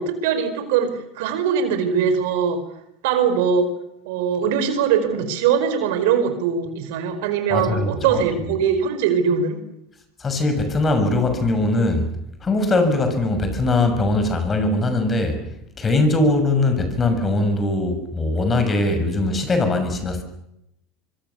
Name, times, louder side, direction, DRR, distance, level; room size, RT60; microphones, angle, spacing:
voice 1, 0.0-2.6 3.0-3.7 4.0-9.6, right 7 dB, 70° right, 4.8 m, -21 dB
voice 2, 7.5-8.2 10.2-12.1 12.4-15.4 15.8-20.2, left 2 dB, 25° left, 6.5 m, -21 dB
25.0 x 24.0 x 7.1 m
hypercardioid pair, 100°, 0 cm